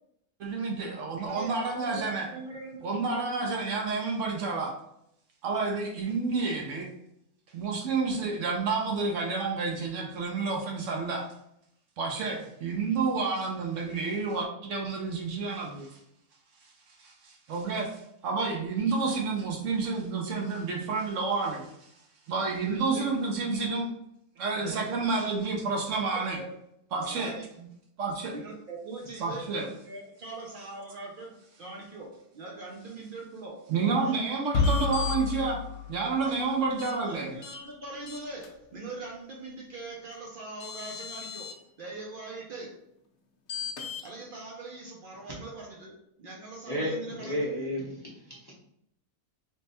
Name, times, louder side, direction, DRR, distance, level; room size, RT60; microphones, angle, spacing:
voice 1, 0.4-2.3 2.8-4.7 5.4-6.9 7.5-11.3 12.0-16.0 17.0-21.9 22.3-23.9 24.4-26.4 26.9-27.3 28.0-28.3 29.2-29.7 33.7-35.6 35.9-37.3, right 4 dB, 65° right, 1 dB, 0.8 m, -30 dB
voice 2, 1.1-3.3 22.7-23.1 24.6-25.0 26.4-26.5 27.0-27.7 28.3-34.2 34.6-34.7 36.2-42.9 44.0-47.4, right 2 dB, 85° right, -2 dB, 0.4 m, -42 dB
sound 1, 34.5-36.6, left 4 dB, 75° left, 1.1 m, -29 dB
sound 2, 34.6-35.2 36.8-36.9 37.4-37.6 38.1-38.5 40.1-40.2 40.6-41.5 43.5-44.0, left 7 dB, 55° left, 0.9 m, -38 dB
voice 3, 46.6-48.5, left 1 dB, 25° left, -6 dB, 0.6 m, -33 dB
3.3 x 2.1 x 4.0 m, 0.77 s
omnidirectional pair, 1.6 m